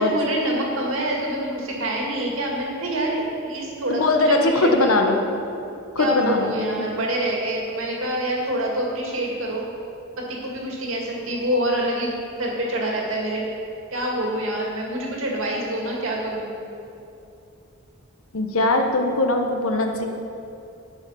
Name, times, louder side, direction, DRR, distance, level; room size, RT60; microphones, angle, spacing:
voice 1, 0.0-5.0 6.0-9.6 10.2-12.1 12.4-13.4 13.9-16.6, right 1 dB, 70° right, -2 dB, 2.0 m, -26 dB
voice 2, 3.9-5.2 5.9-6.9 18.3-20.1, left 2 dB, 80° left, 4 dB, 1.0 m, -21 dB
13.0 x 5.6 x 5.6 m, 2.7 s
head